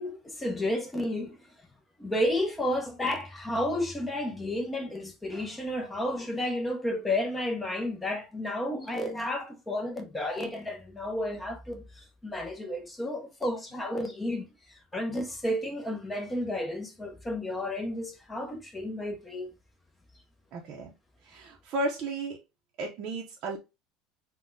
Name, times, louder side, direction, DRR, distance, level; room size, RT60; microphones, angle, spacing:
voice 1, 0.0-1.5 2.0-19.5, left 1 dB, 10° left, 0.6 m, -32 dB
voice 2, 20.5-20.9 21.2-22.4 22.8-23.6, right 2 dB, 45° right, 0.5 m, -34 dB
3.9 x 2.1 x 2.5 m
cardioid pair, 150°, 0 cm